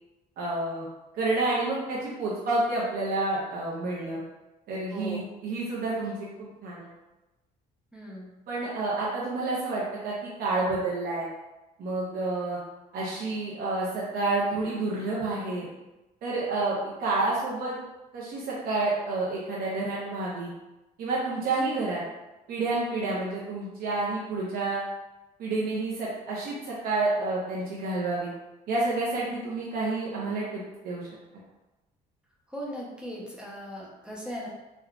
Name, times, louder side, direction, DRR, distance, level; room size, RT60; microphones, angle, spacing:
voice 1, 0.4-0.8 1.1-4.2 4.7-6.9 8.5-11.3 11.8-12.6 12.9-15.7 16.2-17.8 18.1-20.5 21.0-22.0 22.5-24.8 25.4-28.3 28.7-31.1, right 2 dB, 65° right, -5 dB, 0.7 m, -29 dB
voice 2, 4.9-5.3 7.9-8.3 22.9-23.2 32.5-34.5, equal, 5° right, -4 dB, 0.6 m, -38 dB
3.7 x 2.3 x 2.3 m, 1.0 s
cardioid pair, 110°, 17 cm